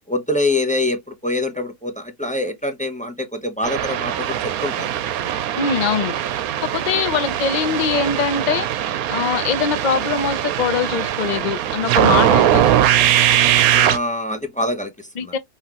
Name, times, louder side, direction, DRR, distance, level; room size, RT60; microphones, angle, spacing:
voice 1, 0.1-4.9 6.8-6.9 13.7-15.3, left 2 dB, 5° left, 0.8 m, -25 dB
sound 1, 3.6-14.0, right 11 dB, 80° right, 1.1 m, -20 dB
voice 2, 5.6-6.2 6.6-12.7 15.2-15.4, left 6 dB, 40° left, 0.7 m, -22 dB
5.7 x 3.1 x 3.0 m
omnidirectional pair, 1.5 m